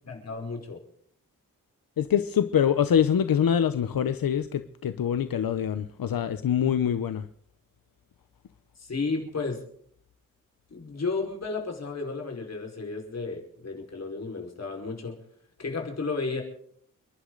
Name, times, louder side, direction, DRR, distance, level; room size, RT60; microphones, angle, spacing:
voice 1, 0.0-0.8 8.8-9.6 10.7-15.2 15.6-16.4, left 4 dB, 50° left, 5.0 m, -33 dB
voice 2, 2.0-7.3, left 8 dB, 85° left, 0.9 m, -24 dB
29.5 x 11.5 x 4.0 m
wide cardioid pair, 155°, 34 cm